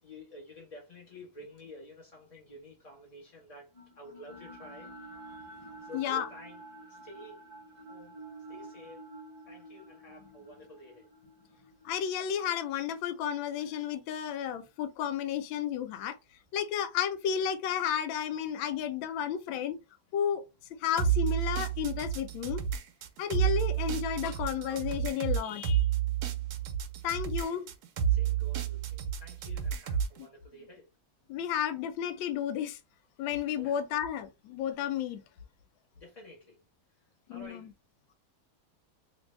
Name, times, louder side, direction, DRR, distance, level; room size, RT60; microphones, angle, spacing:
voice 1, 0.0-4.9 5.8-6.6 6.9-7.4 7.7-8.2 8.5-9.1 9.5-11.1 27.4-27.7 28.1-30.9 33.5-33.8 35.9-36.6 37.3-37.7, left 1 dB, 35° left, 0.5 m, -50 dB
sound 1, 3.7-13.9, right 2 dB, 20° left, 1.3 m, -50 dB
voice 2, 5.9-6.3 11.8-16.2 16.5-19.8 20.1-20.4 20.8-22.6 23.2-25.9 27.0-27.7 31.3-32.8 33.2-35.2 37.3-37.7, left 9 dB, 80° left, 1.3 m, -32 dB
sound 2, 21.0-30.2, right 9 dB, 75° right, 0.9 m, -30 dB
3.1 x 2.6 x 3.0 m
omnidirectional pair, 2.1 m